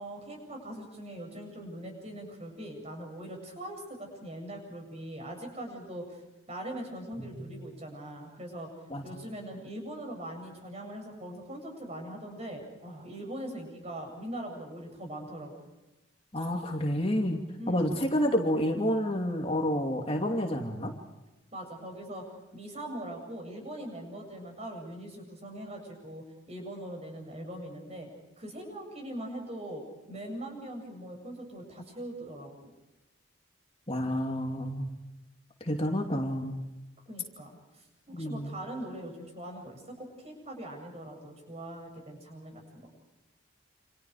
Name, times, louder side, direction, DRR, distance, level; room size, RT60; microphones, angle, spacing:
voice 1, 0.0-6.2 6.5-8.7 9.0-15.5 17.6-18.0 21.5-22.3 22.5-28.1 28.4-32.7 37.1-42.9, right 1 dB, 30° right, 3 dB, 7.9 m, -41 dB
voice 2, 7.2-7.6 8.9-9.2 16.3-20.9 33.9-34.9 35.6-36.6 38.1-38.6, equal, 30° left, 2 dB, 2.7 m, -29 dB
29.0 x 28.0 x 5.0 m, 1.0 s
head